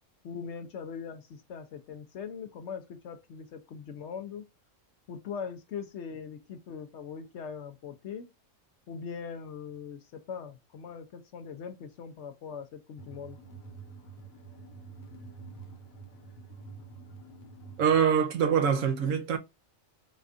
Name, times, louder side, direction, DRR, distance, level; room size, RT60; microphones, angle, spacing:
voice 1, 0.2-4.4 5.1-8.3 8.9-13.4, left 6 dB, 65° left, 0.8 m, -41 dB
sound 1, 13.0-18.0, right 4 dB, 85° left, 1.2 m, -47 dB
voice 2, 17.8-19.4, right 7 dB, 75° right, 1.0 m, -24 dB
4.1 x 2.4 x 2.5 m
omnidirectional pair, 1.4 m